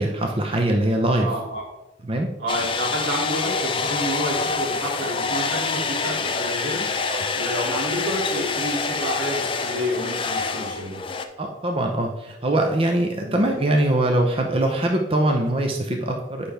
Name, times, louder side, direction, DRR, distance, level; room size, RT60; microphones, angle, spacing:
voice 1, 0.0-1.4 2.0-2.3 7.1-7.3 11.4-16.5, right 1 dB, 30° right, 2 dB, 0.6 m, -22 dB
voice 2, 1.2-1.6 2.4-6.9 7.3-11.0 13.2-13.4, equal, 90° right, -3 dB, 2.4 m, -29 dB
sound 1, 2.5-11.3, left 4 dB, 25° left, 0.4 m, -26 dB
8.2 x 5.5 x 3.4 m, 0.99 s
head